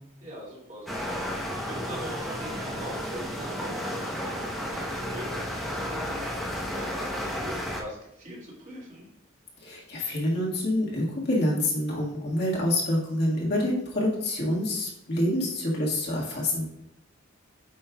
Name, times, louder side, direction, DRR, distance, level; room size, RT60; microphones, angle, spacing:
voice 1, 0.2-9.1, right 1 dB, 35° right, -5 dB, 2.4 m, -43 dB
sound 1, 0.9-7.8, equal, ahead, 0.8 m, -32 dB
voice 2, 9.6-16.7, left 1 dB, 55° left, -4 dB, 1.7 m, -27 dB
8.5 x 5.4 x 2.3 m, 0.79 s
head